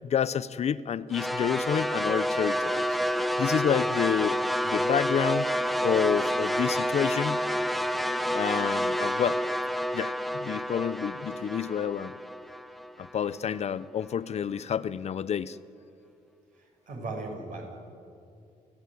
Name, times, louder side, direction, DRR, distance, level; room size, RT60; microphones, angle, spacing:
voice 1, 0.0-2.8 3.2-4.4 4.6-7.4 8.3-9.4 9.9-12.1 13.0-15.6, left 8 dB, 45° left, 16 dB, 0.6 m, -29 dB
sound 1, 1.1-13.4, equal, ahead, 0.8 m, -29 dB
voice 2, 16.5-17.7, right 2 dB, 60° right, 1 dB, 7.2 m, -38 dB
29.5 x 15.0 x 9.5 m, 2.5 s
cardioid pair, 135°, 15 cm